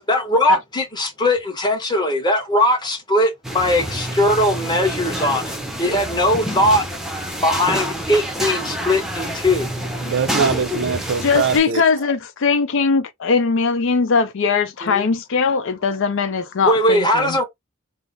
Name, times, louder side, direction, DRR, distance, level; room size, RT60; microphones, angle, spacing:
voice 1, 0.0-6.9 7.4-9.7 14.8-15.0 16.6-17.4, left 1 dB, 20° left, 1.1 m, -19 dB
sound 1, 3.4-11.6, equal, ahead, 0.6 m, -27 dB
voice 2, 10.0-11.8, right 6 dB, 60° right, 0.4 m, -22 dB
voice 3, 11.2-17.4, left 5 dB, 65° left, 0.5 m, -20 dB
3.4 x 2.0 x 3.8 m
head